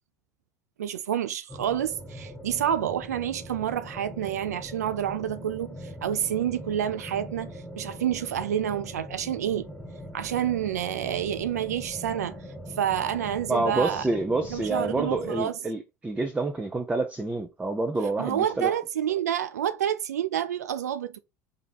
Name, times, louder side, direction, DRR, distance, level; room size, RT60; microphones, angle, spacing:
voice 1, 0.8-9.7 10.1-12.4 12.8-14.0 14.5-15.5 18.2-21.2, right 10 dB, 80° right, 0.4 m, -28 dB
sound 1, 1.5-15.5, equal, 15° left, 1.1 m, -42 dB
voice 2, 13.5-18.7, right 2 dB, 15° right, 0.7 m, -28 dB
3.6 x 3.5 x 4.0 m
hypercardioid pair, 75°, 9 cm